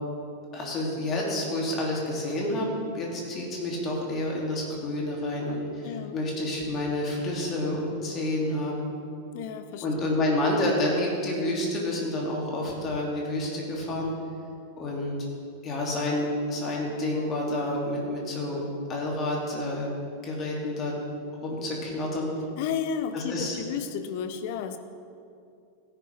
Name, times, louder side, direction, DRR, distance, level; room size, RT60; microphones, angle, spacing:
voice 1, 0.5-2.7 2.9-8.9 9.8-14.1 14.8-15.3 15.6-18.6 18.9-19.9 20.2-21.0 21.4-22.3 23.1-23.6, left 1 dB, 30° left, -2 dB, 2.8 m, -29 dB
voice 2, 5.8-6.2 9.3-10.1 22.6-24.8, left 7 dB, 50° left, 10 dB, 0.8 m, -32 dB
16.0 x 9.9 x 3.5 m, 2.5 s
figure-of-eight pair, 90°, 0 cm